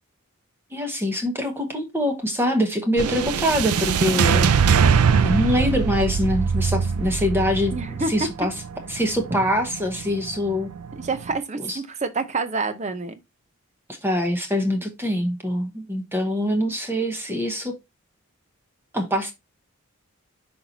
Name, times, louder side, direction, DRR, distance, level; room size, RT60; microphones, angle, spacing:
voice 1, 0.7-4.9 5.2-7.8 8.1-8.5 8.9-10.7 11.6-11.8 14.0-17.7 18.9-19.3, left 1 dB, 10° right, 1.0 m, -24 dB
sound 1, 3.0-11.4, right 6 dB, 85° right, 0.5 m, -23 dB
voice 2, 7.7-8.1 10.9-13.1, right 3 dB, 30° right, 0.7 m, -28 dB
5.8 x 4.3 x 3.9 m
head